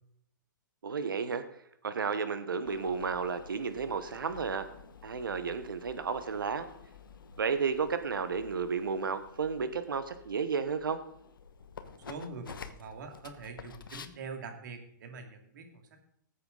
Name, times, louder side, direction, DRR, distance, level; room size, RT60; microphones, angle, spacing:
voice 1, 0.8-1.4 1.8-4.7 5.0-6.7 7.4-11.0, right 5 dB, 90° right, 10 dB, 1.2 m, -32 dB
sound 1, 2.6-14.1, left 6 dB, 85° left, 1.1 m, -51 dB
voice 2, 11.8-16.0, right 4 dB, 65° right, 4 dB, 2.6 m, -44 dB
18.5 x 8.2 x 4.0 m, 0.72 s
hypercardioid pair, 130°, 11 cm